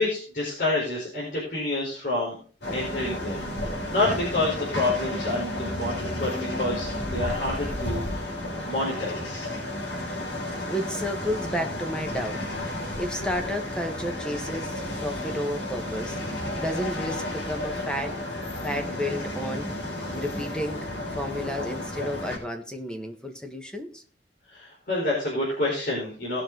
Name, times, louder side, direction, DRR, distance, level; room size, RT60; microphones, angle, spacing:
voice 1, 0.0-2.4 2.7-3.4 3.9-8.3 8.6-9.5 24.5-26.4, left 2 dB, 50° left, -5 dB, 4.4 m, -28 dB
sound 1, 2.6-22.4, left 1 dB, 85° left, 4.3 m, -32 dB
voice 2, 10.6-12.4 13.0-16.2 16.6-18.2 18.6-19.7 20.1-20.9 21.1-24.0, equal, 5° left, 4 dB, 1.4 m, -32 dB
18.5 x 6.2 x 3.9 m, 0.41 s
head